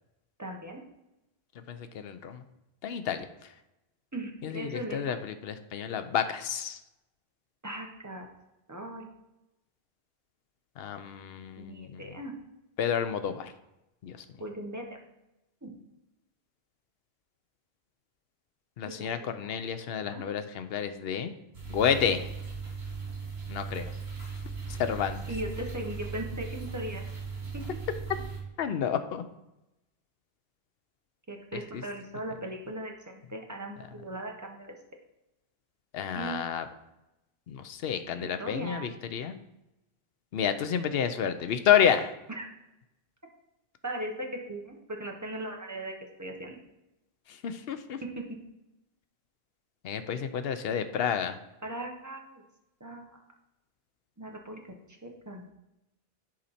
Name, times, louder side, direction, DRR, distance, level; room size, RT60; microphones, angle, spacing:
voice 1, 0.4-0.8 4.1-5.0 7.6-8.3 8.7-9.1 11.6-12.3 14.4-15.0 15.6-15.7 18.9-19.1 19.4-19.6 20.0-20.2 25.3-26.5 26.7-27.0 27.5-27.6 31.3-34.7 36.1-36.4 38.2-38.9 42.3-42.5 43.8-45.9 46.2-46.6 48.0-48.2 51.6-52.4 52.8-53.2 54.2-54.7 55.0-55.4, right 1 dB, 15° right, 1 dB, 1.2 m, -38 dB
voice 2, 1.7-2.4 2.8-3.5 4.4-6.8 10.8-12.0 12.8-13.5 14.0-14.2 18.8-21.3 21.7-22.3 23.5-23.9 24.7-25.2 28.6-29.2 31.7-31.8 35.9-36.7 37.5-39.4 40.3-42.1 47.3-48.0 49.8-51.4, left 8 dB, 75° left, 9 dB, 0.9 m, -30 dB
sound 1, 21.5-28.4, right 4 dB, 85° right, 3.3 m, -38 dB
10.5 x 4.2 x 4.2 m, 0.92 s
omnidirectional pair, 1.0 m